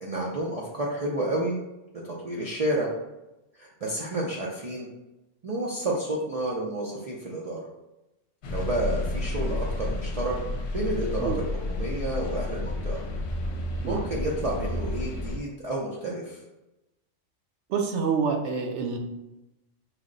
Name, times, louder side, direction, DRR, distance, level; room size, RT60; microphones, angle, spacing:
voice 1, 0.0-1.6 2.0-2.9 3.6-4.9 5.4-7.6 8.5-10.4 10.7-13.0 13.9-16.4, right 1 dB, 50° right, -4 dB, 0.4 m, -30 dB
sound 1, 8.4-15.4, left 2 dB, 65° left, 0.9 m, -31 dB
voice 2, 17.7-19.0, right 5 dB, 70° right, 3 dB, 0.9 m, -27 dB
4.8 x 2.1 x 3.7 m, 0.98 s
omnidirectional pair, 1.3 m